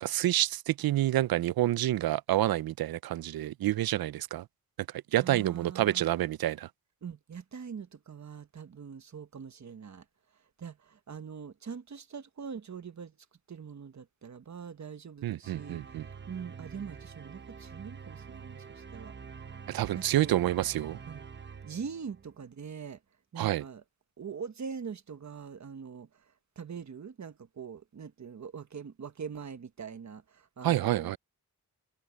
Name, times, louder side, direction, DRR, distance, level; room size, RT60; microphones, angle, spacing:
voice 1, 0.0-4.4 5.1-6.7 15.2-16.0 19.7-21.0 23.4-23.6 30.6-31.2, right 14 dB, 90° right, 0.5 m, -28 dB
voice 2, 5.2-6.1 7.0-10.0 10.3-13.2 13.5-19.1 19.9-20.5 21.1-23.0 23.3-23.8 24.2-31.1, right 6 dB, 55° right, 1.4 m, -43 dB
sound 1, 15.4-22.5, right 6 dB, 30° right, 0.8 m, -47 dB
wide cardioid pair, 120°, 35 cm